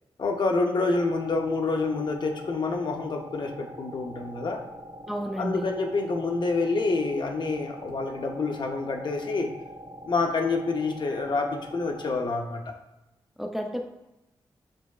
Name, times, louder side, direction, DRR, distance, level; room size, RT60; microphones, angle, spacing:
voice 1, 0.2-4.6 5.4-9.5 10.0-12.7, left 3 dB, 55° left, 3 dB, 0.6 m, -27 dB
sound 1, 0.9-12.3, equal, 40° right, 1.0 m, -44 dB
voice 2, 5.1-5.8 13.4-13.9, equal, ahead, 3 dB, 0.4 m, -31 dB
4.9 x 3.4 x 2.3 m, 0.93 s
wide cardioid pair, 90°, 9 cm